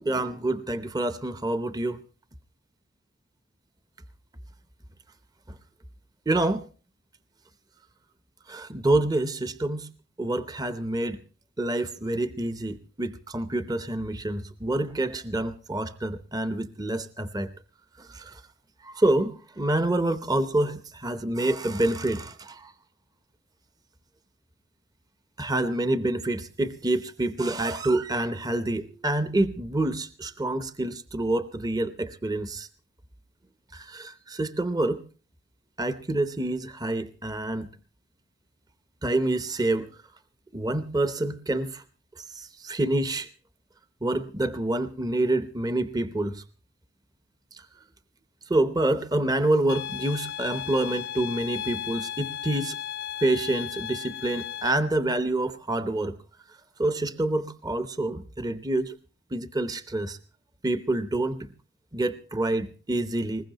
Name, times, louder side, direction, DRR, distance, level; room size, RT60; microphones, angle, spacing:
voice 1, 0.0-2.0 6.3-6.6 8.5-9.9 10.2-11.2 11.6-17.5 18.0-18.4 18.8-22.7 25.4-32.7 33.7-35.0 35.8-37.7 39.0-39.9 40.5-41.8 42.2-43.3 44.0-46.4 47.5-47.6 48.5-52.8 53.2-56.2 56.8-58.9 59.3-60.2 60.6-61.5 61.9-63.4, right 1 dB, 20° right, 11 dB, 0.7 m, -27 dB
sound 1, 49.7-54.7, left 10 dB, 60° left, 0.7 m, -35 dB
21.0 x 20.0 x 2.9 m, 0.37 s
head